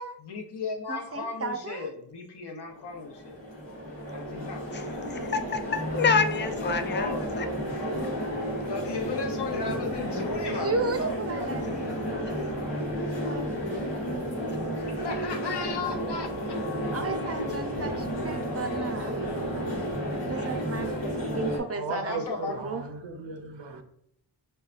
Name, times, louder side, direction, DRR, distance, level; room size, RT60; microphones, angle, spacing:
voice 1, 0.2-3.4 4.1-5.1 6.9-7.2 8.7-10.7 11.5-11.9 14.9-16.7 17.8-17.9 21.9-22.6, left 4 dB, 65° left, 3 dB, 0.7 m, -36 dB
voice 2, 0.9-1.9 10.6-11.9 16.9-19.2 20.3-22.2 22.5-22.8, right 4 dB, 35° right, 7 dB, 0.5 m, -34 dB
sound 1, 2.8-21.6, equal, 90° left, 1.3 m, -32 dB
voice 3, 4.7-5.2 5.9-7.1 7.4-7.5 13.1-13.2, left 5 dB, 25° left, 8 dB, 0.4 m, -27 dB
voice 4, 21.7-23.8, right 3 dB, 85° right, 6 dB, 0.6 m, -36 dB
5.4 x 2.2 x 2.4 m, 0.72 s
cardioid pair, 40°, 44 cm